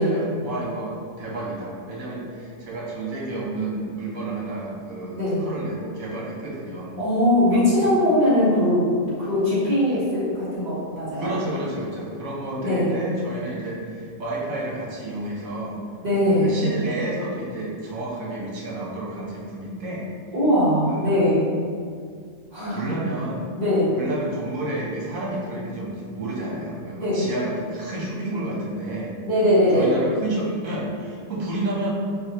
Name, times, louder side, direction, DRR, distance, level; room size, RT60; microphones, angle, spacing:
voice 1, 0.0-7.0 7.5-7.8 11.1-15.8 16.2-20.1 20.9-21.3 22.7-23.4 24.0-29.1 29.7-31.9, right 2 dB, 80° right, -5 dB, 1.3 m, -31 dB
voice 2, 7.0-8.9 9.2-11.3 12.6-12.9 16.0-16.7 20.3-21.5 22.5-22.9 23.6-23.9 27.0-27.2 29.2-30.0, left 1 dB, 35° right, -11 dB, 1.1 m, -20 dB
4.1 x 2.7 x 2.8 m, 2.1 s
omnidirectional pair, 1.4 m